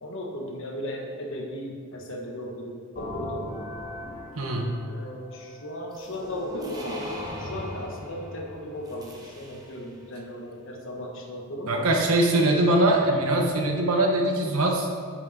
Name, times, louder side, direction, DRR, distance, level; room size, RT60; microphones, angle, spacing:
voice 1, 0.0-3.5 4.8-7.0 7.4-11.7, equal, 60° left, 1 dB, 1.2 m, -36 dB
sound 1, 3.0-6.7, left 1 dB, 35° left, 1.8 m, -39 dB
voice 2, 4.4-4.7 11.7-14.9, right 1 dB, 75° right, 1 dB, 1.1 m, -22 dB
sound 2, 5.9-9.9, left 1 dB, 15° right, 1.0 m, -38 dB
7.9 x 6.3 x 4.0 m, 2.1 s
head